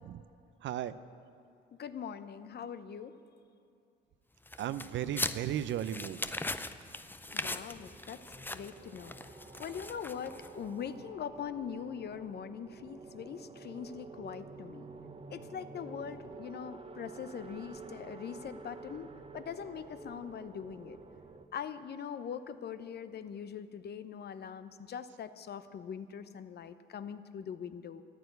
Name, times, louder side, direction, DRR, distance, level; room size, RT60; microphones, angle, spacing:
voice 1, 0.6-0.9 4.6-6.3, right 10 dB, 70° right, 14 dB, 0.6 m, -35 dB
voice 2, 1.8-3.2 7.3-8.2 8.5-9.1 9.6-14.9 15.3-21.0 21.5-28.0, left 7 dB, 55° left, 12 dB, 0.8 m, -42 dB
sound 1, 4.5-10.7, left 2 dB, 10° left, 0.5 m, -40 dB
sound 2, 7.3-21.5, right 4 dB, 30° right, 0.9 m, -50 dB
14.0 x 10.5 x 8.0 m, 2.5 s
cardioid pair, 90°, 20 cm